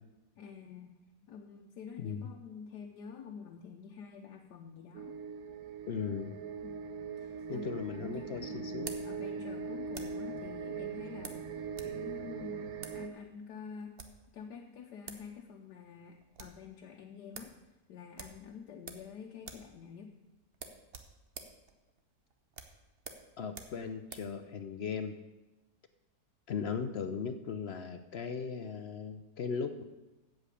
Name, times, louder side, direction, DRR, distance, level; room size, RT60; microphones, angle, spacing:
voice 1, 0.4-0.9 1.2-5.2 6.6-6.8 7.2-13.9 14.3-17.6 17.9-20.1, left 6 dB, 90° left, 1 dB, 1.4 m, -48 dB
sound 1, 4.9-13.1, right 6 dB, 65° right, 1.2 m, -41 dB
voice 2, 5.9-6.3 7.5-8.9 23.4-25.1 26.5-29.8, left 6 dB, 70° left, 9 dB, 0.6 m, -37 dB
sound 2, 7.4-10.3 11.2-12.0 12.2-12.3 12.8-13.0 13.8-14.3 14.8-14.9 15.1-15.3 15.6-15.7 16.0-16.6 17.0-17.1 17.3-17.6 18.1-19.1 19.4-19.7 20.0-20.1 20.5-24.3, right 5 dB, 45° right, 1.0 m, -48 dB
8.2 x 7.7 x 8.3 m, 1.1 s
omnidirectional pair, 1.8 m